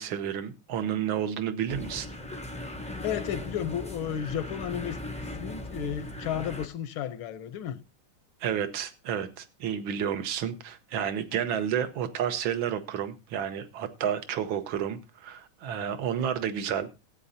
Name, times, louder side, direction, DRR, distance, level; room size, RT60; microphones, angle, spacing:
voice 1, 0.0-2.1 8.4-16.9, right 9 dB, 70° right, 1.8 m, -31 dB
sound 1, 1.7-6.7, left 1 dB, 10° left, 0.3 m, -38 dB
voice 2, 3.0-5.0 5.4-7.8, left 10 dB, 75° left, 1.7 m, -33 dB
18.0 x 8.9 x 2.8 m
omnidirectional pair, 2.3 m